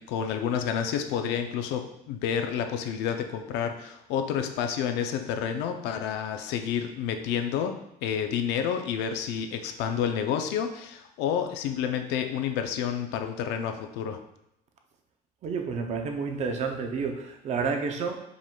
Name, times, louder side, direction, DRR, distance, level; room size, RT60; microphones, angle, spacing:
voice 1, 0.0-14.2, left 8 dB, 80° left, 6 dB, 0.5 m, -29 dB
voice 2, 15.4-18.2, right 5 dB, 40° right, 4 dB, 0.5 m, -30 dB
5.1 x 3.6 x 2.3 m, 0.80 s
cardioid pair, 150°, 17 cm